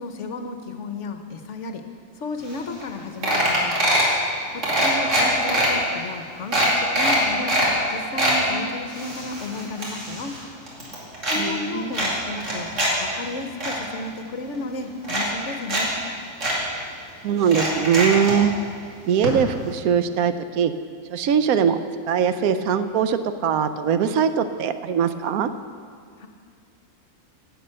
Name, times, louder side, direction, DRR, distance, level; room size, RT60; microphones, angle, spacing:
voice 1, 0.0-1.8 2.2-3.7 4.5-10.3 11.3-12.7 13.0-15.9 26.2-26.3, left 3 dB, 60° left, 6 dB, 1.1 m, -33 dB
sound 1, 2.5-2.6 2.8-3.0 3.2-4.1 4.6-5.7 6.1-6.2 6.5-7.7 8.0-8.4 8.9-10.4 10.7-11.4 11.9-12.9 13.3-13.7 14.5-14.6 15.0-15.8 16.1-16.2 16.4-16.6 17.4-18.4 19.2-19.3 19.6-19.7, right 1 dB, 55° right, 2.8 m, -23 dB
voice 2, 11.4-11.9 17.2-18.5 19.0-20.7 21.1-21.8 22.1-25.5, right 7 dB, 75° right, 11 dB, 1.0 m, -21 dB
11.0 x 8.2 x 7.5 m, 2.2 s
omnidirectional pair, 1.6 m